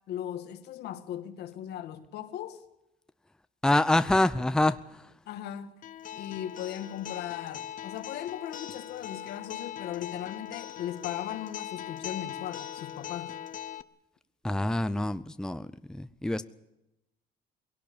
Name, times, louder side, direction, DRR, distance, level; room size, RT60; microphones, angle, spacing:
voice 1, 0.1-2.6 5.2-5.7 6.1-13.4, left 11 dB, 75° left, 1.8 m, -38 dB
voice 2, 3.6-4.8 14.4-16.5, left 1 dB, 5° left, 0.7 m, -26 dB
Acoustic guitar, 5.8-13.8, left 11 dB, 50° left, 0.8 m, -40 dB
20.5 x 17.5 x 8.5 m
cardioid pair, 110°, 17 cm